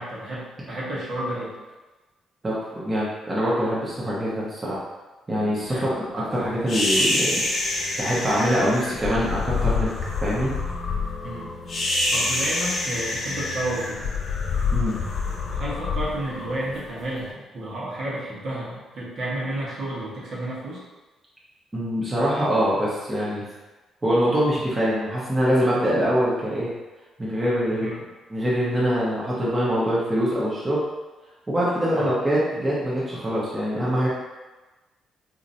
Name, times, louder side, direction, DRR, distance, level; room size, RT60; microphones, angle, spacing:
voice 1, 0.0-1.5 5.7-5.9 11.2-11.5 12.1-14.1 15.5-20.8 27.7-28.1 31.9-32.1, right 1 dB, 55° right, -7 dB, 1.2 m, -31 dB
voice 2, 2.4-4.8 5.3-7.4 8.0-9.9 10.2-10.5 14.7-15.0 21.7-23.4 24.0-26.7 27.2-27.9 28.3-30.8 31.5-34.1, equal, 20° right, -7 dB, 0.9 m, -24 dB
sound 1, 5.3-16.8, left 2 dB, 30° left, 1.0 m, -42 dB
sound 2, 6.7-17.0, left 3 dB, 55° left, 0.9 m, -26 dB
4.0 x 2.9 x 2.6 m, 1.2 s
cardioid pair, 90°, 0 cm